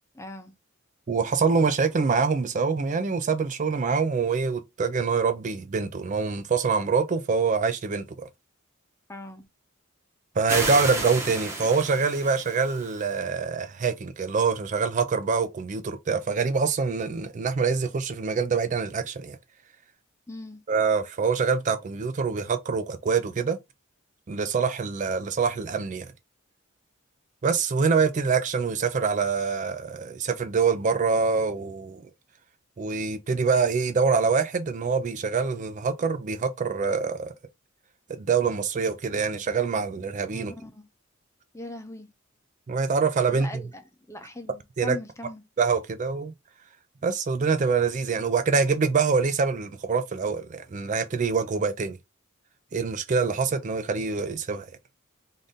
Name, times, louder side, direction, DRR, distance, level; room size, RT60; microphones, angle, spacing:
voice 1, 0.1-0.5 9.1-9.4 20.3-20.6 40.3-40.9 41.5-42.1 43.3-43.8 44.1-45.4, left 2 dB, 15° left, 0.6 m, -40 dB
voice 2, 1.1-8.3 10.4-19.4 20.7-23.6 24.3-26.1 27.4-32.1 32.8-37.3 38.1-40.5 42.7-43.5 44.8-45.0 45.6-46.3 47.0-52.0 52.7-54.7, right 5 dB, 35° right, 0.3 m, -25 dB
sound 1, 10.5-13.1, right 2 dB, 15° right, 1.1 m, -32 dB
3.8 x 2.6 x 3.5 m
head